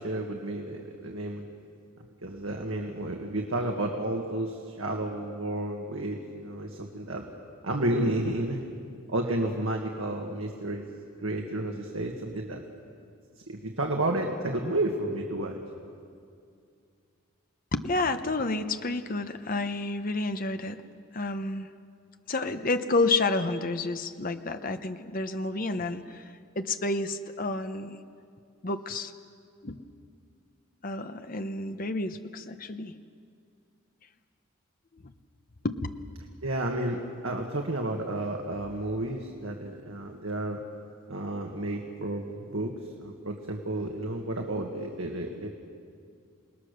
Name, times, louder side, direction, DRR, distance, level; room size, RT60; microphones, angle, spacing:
voice 1, 0.0-1.4 2.2-7.3 7.6-8.6 9.1-10.8 11.2-12.6 13.5-15.6 36.4-40.6 41.1-45.5, right 1 dB, 70° right, 2 dB, 1.7 m, -31 dB
voice 2, 17.7-20.8 21.1-21.7 22.3-26.2 26.6-28.0 28.6-29.1 29.6-29.8 30.8-32.9 35.6-35.9, left 2 dB, 40° left, 8 dB, 0.9 m, -30 dB
28.5 x 19.5 x 6.7 m, 2.3 s
head